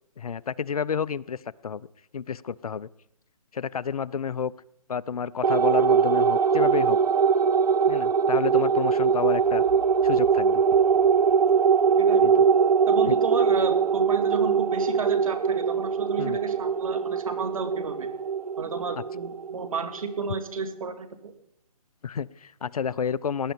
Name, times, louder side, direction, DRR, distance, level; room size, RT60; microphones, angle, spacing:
voice 1, 0.2-1.9 2.1-2.9 3.5-4.5 4.9-7.0 7.9-9.6 10.0-10.6 12.2-12.4 13.1-13.2 16.2-16.4 22.0-23.5, left 6 dB, 70° left, 21 dB, 0.5 m, -30 dB
sound 1, 5.4-20.2, right 6 dB, 80° right, 0.5 m, -22 dB
voice 2, 12.0-12.5 12.9-18.1 18.6-21.3, right 5 dB, 60° right, 9 dB, 2.0 m, -32 dB
18.5 x 10.5 x 5.2 m, 0.76 s
figure-of-eight pair, 140°, 20 cm